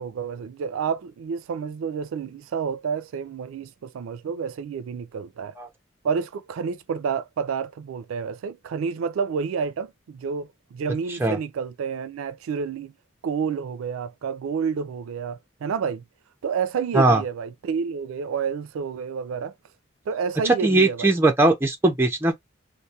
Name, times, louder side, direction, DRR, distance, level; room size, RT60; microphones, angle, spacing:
voice 1, 0.0-5.6 6.0-12.9 13.2-16.0 16.4-19.5 20.1-21.1, right 6 dB, 90° right, 0.3 m, -29 dB
voice 2, 20.4-22.3, right 2 dB, 10° right, 0.4 m, -19 dB
2.3 x 2.0 x 2.6 m
head